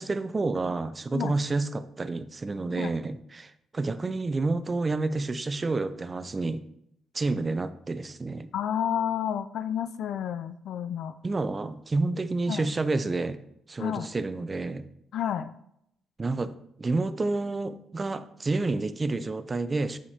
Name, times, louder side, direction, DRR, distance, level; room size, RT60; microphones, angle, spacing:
voice 1, 0.0-6.6 7.1-8.5 11.2-13.4 13.7-14.9 16.2-20.0, right 3 dB, 30° right, 12 dB, 0.4 m, -29 dB
voice 2, 8.5-11.1 12.5-12.7 13.8-14.1 15.1-15.5, left 9 dB, 75° left, 11 dB, 0.3 m, -30 dB
8.3 x 5.0 x 2.8 m, 0.76 s
cardioid pair, 90°, 0 cm